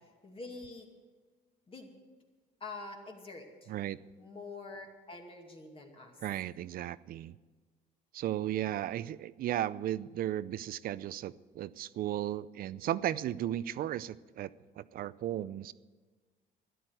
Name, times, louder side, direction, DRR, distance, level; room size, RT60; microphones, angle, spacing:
voice 1, 0.2-0.9 1.7-1.9 2.6-3.7 4.2-6.2 12.8-13.3, left 3 dB, 30° left, 2 dB, 2.3 m, -46 dB
voice 2, 3.7-4.0 6.2-7.4 8.1-14.5 14.8-15.7, right 12 dB, 60° right, 17 dB, 0.5 m, -35 dB
12.5 x 11.0 x 7.8 m, 1.4 s
cardioid pair, 110°, 17 cm